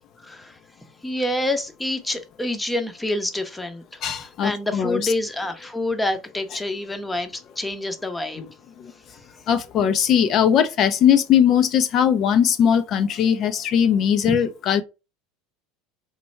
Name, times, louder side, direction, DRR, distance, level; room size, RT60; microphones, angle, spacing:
voice 1, 0.2-0.6 1.0-8.4 14.3-14.4, left 1 dB, 10° left, 0.7 m, -27 dB
voice 2, 4.0-5.1 8.4-8.5 8.8-8.9 9.5-14.8, left 8 dB, 45° left, 0.4 m, -19 dB
3.2 x 2.2 x 4.1 m
supercardioid pair, 100°, 0 cm